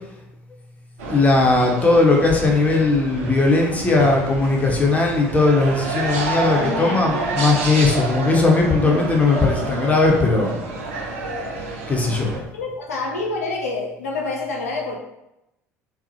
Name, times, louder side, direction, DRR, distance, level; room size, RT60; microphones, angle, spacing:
voice 1, 1.0-10.5 11.9-12.3, left 3 dB, 15° left, 0 dB, 0.6 m, -18 dB
sound 1, 1.0-12.4, right 3 dB, 65° right, 0.4 m, -29 dB
voice 2, 6.4-7.4 12.5-15.0, left 3 dB, 75° left, -1 dB, 0.4 m, -27 dB
2.8 x 2.0 x 2.7 m, 0.89 s
figure-of-eight pair, 60°, 8 cm